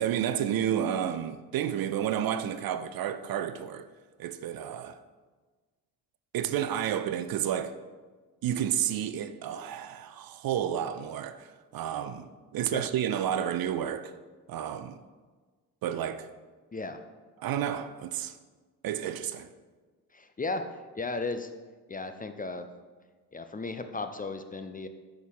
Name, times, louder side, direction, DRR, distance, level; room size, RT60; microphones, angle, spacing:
voice 1, 0.0-3.9 4.2-5.0 6.3-7.7 8.4-12.3 12.5-14.1 14.5-15.0 15.8-16.3 17.4-18.4 18.8-19.5, right 10 dB, 55° right, 0.5 m, -31 dB
voice 2, 16.7-17.0 20.1-21.5 21.9-22.7 23.3-24.9, left 3 dB, 20° left, 0.5 m, -35 dB
6.2 x 4.7 x 5.4 m
supercardioid pair, 60°, 43 cm